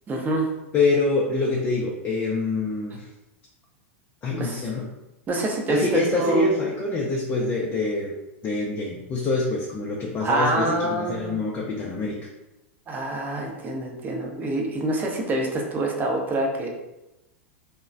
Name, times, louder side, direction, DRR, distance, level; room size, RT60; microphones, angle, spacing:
voice 1, 0.1-0.5 4.3-4.6 5.3-6.6 10.2-11.4 12.9-16.7, right 2 dB, 25° right, 0 dB, 0.6 m, -26 dB
voice 2, 0.7-3.1 4.2-4.9 5.7-8.1 8.4-12.2, left 3 dB, 30° left, -3 dB, 0.4 m, -25 dB
3.0 x 2.1 x 2.4 m, 0.95 s
hypercardioid pair, 100°, 7 cm